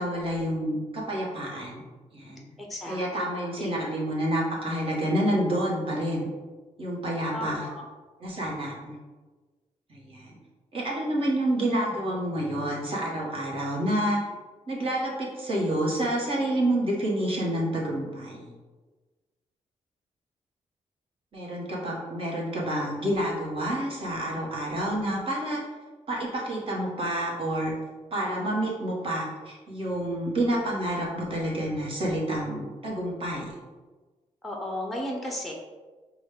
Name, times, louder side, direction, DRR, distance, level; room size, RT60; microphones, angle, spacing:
voice 1, 0.0-1.8 2.1-2.5 2.9-6.3 6.8-7.7 8.2-9.0 9.9-10.4 10.7-14.2 14.7-18.5 21.3-25.6 26.1-27.7 28.1-33.6, right 1 dB, 45° right, -4 dB, 1.3 m, -28 dB
voice 2, 2.6-3.3 3.6-3.8 7.3-7.9 34.4-35.5, left 1 dB, ahead, 0 dB, 0.7 m, -34 dB
5.0 x 2.3 x 3.7 m, 1.3 s
cardioid pair, 80°, 13 cm